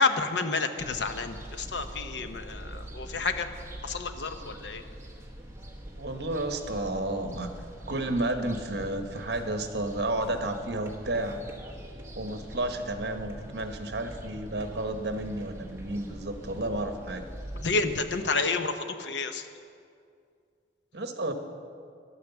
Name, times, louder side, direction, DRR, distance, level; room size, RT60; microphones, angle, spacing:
voice 1, 0.0-3.5 3.8-4.8 17.6-19.5, left 4 dB, 80° left, 8 dB, 0.8 m, -29 dB
sound 1, 0.8-18.2, right 1 dB, 15° right, 1.2 m, -43 dB
voice 2, 6.0-7.5 7.9-11.4 12.2-17.2 20.9-21.3, right 1 dB, 65° right, 6 dB, 1.0 m, -31 dB
11.5 x 9.4 x 6.9 m, 2.3 s
head